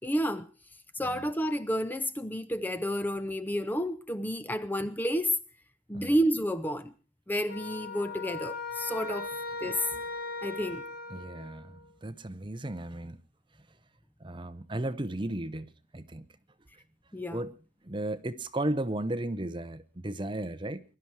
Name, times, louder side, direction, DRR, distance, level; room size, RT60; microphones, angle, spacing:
voice 1, 0.0-0.5 1.0-5.4 5.9-6.9 7.3-9.3 9.6-9.9 10.4-10.8 17.1-17.4, equal, 10° left, 0.7 m, -30 dB
sound 1, 7.5-11.9, left 3 dB, 55° left, 2.2 m, -38 dB
voice 2, 9.6-10.0 11.1-13.2 14.2-16.2 17.3-17.5 17.8-20.8, right 1 dB, 25° right, 0.8 m, -35 dB
22.0 x 12.0 x 4.7 m
head